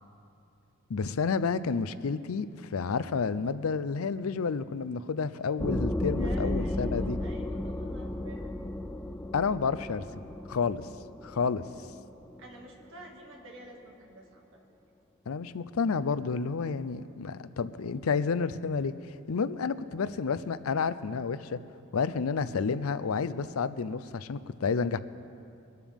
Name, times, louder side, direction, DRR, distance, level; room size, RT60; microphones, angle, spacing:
voice 1, 0.9-7.2 9.3-10.0 10.5-10.9 11.2-11.6 15.3-21.6 21.9-25.0, left 5 dB, 85° left, 14 dB, 0.5 m, -30 dB
sound 1, 5.6-13.0, left 1 dB, 10° left, 0.5 m, -34 dB
voice 2, 6.2-8.5 12.4-14.6, right 1 dB, 65° right, 0 dB, 2.0 m, -50 dB
22.5 x 12.0 x 3.6 m, 2.6 s
head